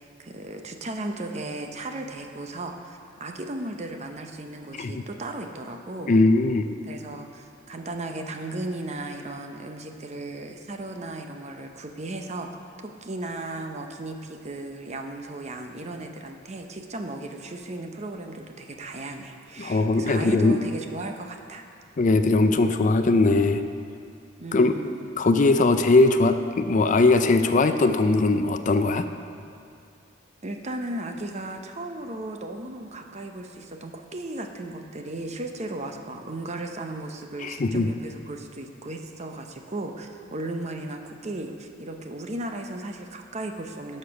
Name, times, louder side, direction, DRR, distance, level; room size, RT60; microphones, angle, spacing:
voice 1, 0.2-6.1 6.9-12.5 12.8-21.6 24.4-25.1 30.4-44.0, right 2 dB, 35° right, 4 dB, 0.7 m, -36 dB
voice 2, 6.1-6.7 19.6-20.6 22.0-23.6 24.5-24.7 25.2-29.0 37.4-37.9, left 3 dB, 40° left, 8 dB, 0.4 m, -20 dB
11.5 x 6.6 x 5.8 m, 2.4 s
head